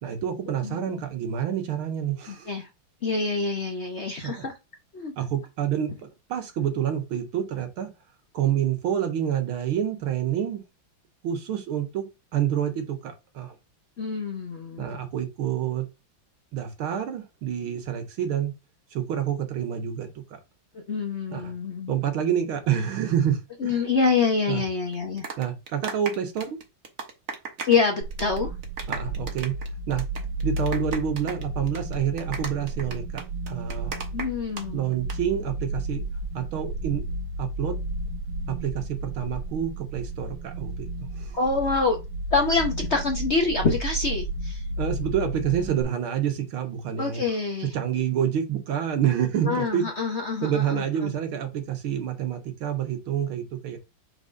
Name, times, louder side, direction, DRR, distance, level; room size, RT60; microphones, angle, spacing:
voice 1, 0.0-2.5 4.2-4.4 5.2-5.9 6.3-7.9 8.3-10.6 11.2-12.1 12.3-13.6 14.8-15.8 16.5-18.5 18.9-20.1 21.3-21.5 21.9-23.8 24.5-24.6 25.4-26.6 28.9-29.5 29.9-30.1 30.4-34.0 34.7-36.0 36.3-37.0 37.4-37.7 38.5-40.9 41.1-41.4 44.8-47.2 47.7-49.9 50.4-53.8, right 9 dB, 80° right, 2.1 m, -28 dB
voice 2, 0.6-1.0 2.3-2.7 3.0-4.5 4.9-5.1 14.0-15.0 20.7-21.9 23.6-25.3 27.7-28.5 34.1-34.8 41.3-42.0 42.3-44.6 47.0-47.7 49.4-51.1, left 4 dB, 50° left, 0.9 m, -26 dB
sound 1, 24.9-27.9 28.1-28.4 28.6-34.6 34.9-35.2, right 5 dB, 45° right, 1.3 m, -36 dB
sound 2, 28.0-45.8, right 1 dB, 65° right, 1.4 m, -33 dB
4.8 x 4.0 x 5.0 m
omnidirectional pair, 2.3 m